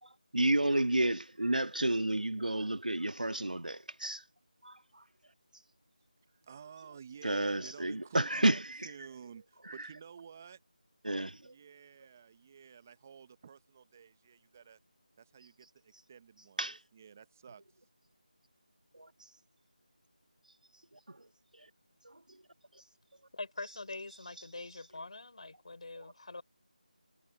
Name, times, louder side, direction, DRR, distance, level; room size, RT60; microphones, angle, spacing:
voice 1, 0.0-4.2 4.6-5.0 7.2-8.9 9.6-9.9 11.0-11.5 16.6-16.8 18.9-19.1 20.9-21.3 21.5-21.7 22.0-22.4 22.7-22.8 26.0-26.1, right 1 dB, 75° right, 1.7 m, -32 dB
voice 2, 6.3-10.6 11.4-14.8 15.2-16.6 16.9-17.8, right 7 dB, 20° right, 1.0 m, -52 dB
voice 3, 23.3-26.4, left 3 dB, 50° left, 4.7 m, -44 dB
figure-of-eight pair, 165°, 4 cm